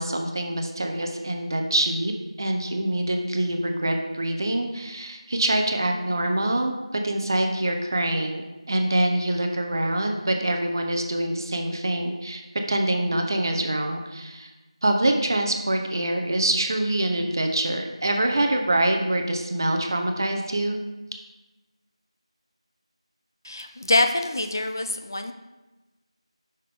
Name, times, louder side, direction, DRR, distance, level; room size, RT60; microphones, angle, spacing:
voice 1, 0.0-2.1 2.4-8.4 8.7-12.4 12.7-14.5 14.8-20.8, right 1 dB, 40° right, 4 dB, 0.7 m, -25 dB
voice 2, 23.4-25.3, left 2 dB, 35° left, 7 dB, 0.3 m, -25 dB
5.8 x 5.8 x 3.5 m, 1.1 s
figure-of-eight pair, 170°, 3 cm